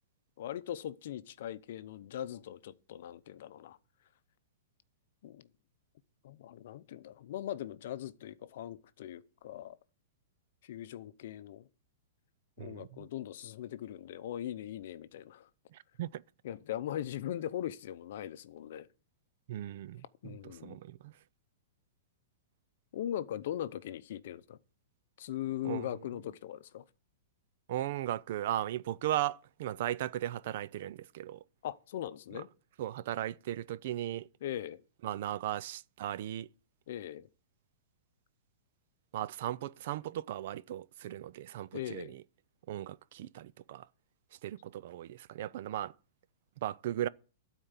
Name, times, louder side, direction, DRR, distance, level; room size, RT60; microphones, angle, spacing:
voice 1, 0.4-3.8 5.2-5.5 6.2-9.8 10.6-11.7 12.6-15.5 16.4-18.9 20.2-20.8 22.9-24.6 25.2-26.8 31.6-32.5 34.4-34.8 36.9-37.3 41.7-42.2, left 11 dB, 55° left, 0.7 m, -40 dB
voice 2, 12.6-13.1 15.7-16.2 19.5-21.1 25.6-25.9 27.7-31.4 32.8-34.3 35.0-36.5 39.1-42.2 42.7-43.9 44.4-45.9 46.6-47.1, right 13 dB, 50° right, 0.4 m, -37 dB
12.5 x 4.4 x 8.2 m
hypercardioid pair, 165°, 0 cm